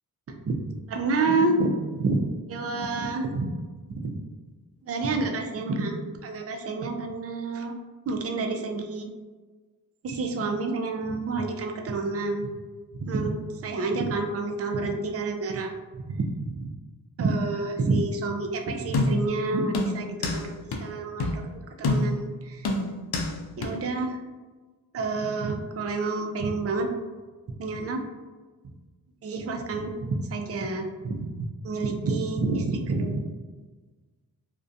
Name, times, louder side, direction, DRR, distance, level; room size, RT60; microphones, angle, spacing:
voice 1, 0.9-2.2 2.5-3.5 3.9-4.2 4.9-7.7 8.1-9.1 10.0-12.5 13.0-15.7 16.0-16.7 17.2-22.7 23.6-24.2 24.9-26.9 27.6-28.0 29.2-31.3 31.6-33.2, right 3 dB, 40° right, 3 dB, 0.4 m, -28 dB
sound 1, 18.9-19.4 19.7-20.4 20.7-20.8 21.2-21.4 21.8-22.3 22.6-23.3 23.6-23.7, left 2 dB, 70° left, 0.5 m, -26 dB
2.3 x 2.2 x 2.6 m, 1.3 s
cardioid pair, 50°, 40 cm